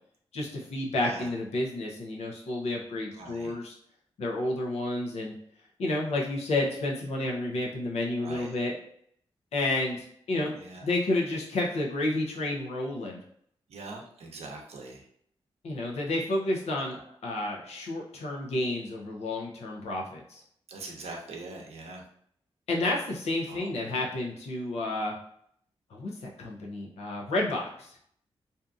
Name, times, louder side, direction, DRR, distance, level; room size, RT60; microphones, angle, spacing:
voice 1, 0.3-3.7 4.2-5.3 5.8-8.7 9.5-13.2 15.6-17.0 17.2-20.4 22.7-25.2 25.9-28.0, left 2 dB, 90° left, -1 dB, 0.6 m, -30 dB
voice 2, 3.1-3.5 8.2-8.5 10.6-10.9 13.7-15.0 16.9-17.0 20.7-22.0 23.5-23.7, right 3 dB, 75° right, 0 dB, 0.6 m, -42 dB
2.6 x 2.4 x 2.4 m, 0.66 s
cardioid pair, 55°, 11 cm